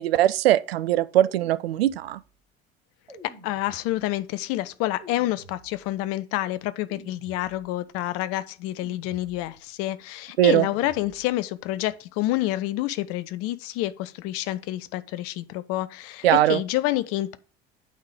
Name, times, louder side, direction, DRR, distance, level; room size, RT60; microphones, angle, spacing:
voice 1, 0.0-2.2 10.4-10.7 16.2-16.6, right 13 dB, 70° right, 0.5 m, -20 dB
sound 1, 1.2-2.4 3.1-4.3 5.0-6.1 6.9-7.9 8.8-9.8 10.6-11.5, right 1 dB, 90° right, 1.2 m, -50 dB
voice 2, 3.2-17.4, left 15 dB, 50° left, 0.6 m, -28 dB
8.7 x 3.8 x 5.0 m
figure-of-eight pair, 60°, 31 cm